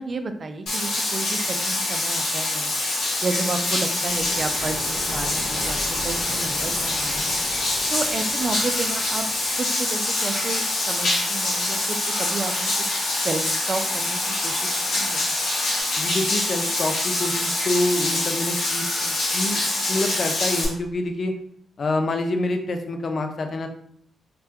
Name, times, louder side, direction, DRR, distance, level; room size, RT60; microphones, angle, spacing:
voice 1, 0.0-2.7 3.2-7.4 7.9-9.2 9.6-12.7 13.2-15.2, right 3 dB, 50° right, 8 dB, 0.3 m, -31 dB
Bathtub (filling or washing), 0.7-20.7, left 2 dB, 70° left, 1.0 m, -25 dB
sound 1, 4.1-9.8, equal, 35° left, 1.3 m, -38 dB
sound 2, 10.0-15.8, equal, 5° right, 1.4 m, -40 dB
voice 2, 16.0-19.6 19.9-21.3 21.8-23.7, left 2 dB, 55° left, 5 dB, 0.4 m, -27 dB
3.3 x 2.2 x 2.8 m, 0.67 s
hypercardioid pair, 40°, 0 cm